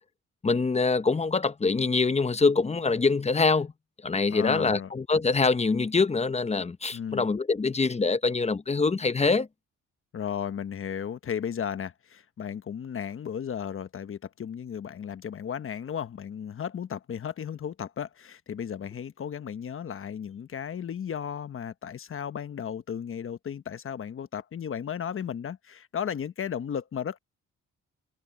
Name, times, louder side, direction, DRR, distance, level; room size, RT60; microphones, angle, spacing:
voice 1, 0.4-3.7 4.0-9.5, left 4 dB, 20° left, 0.9 m, -24 dB
voice 2, 4.3-4.9 6.9-7.3 10.1-27.2, left 8 dB, 45° left, 1.2 m, -35 dB
cardioid pair, 90°, 30 cm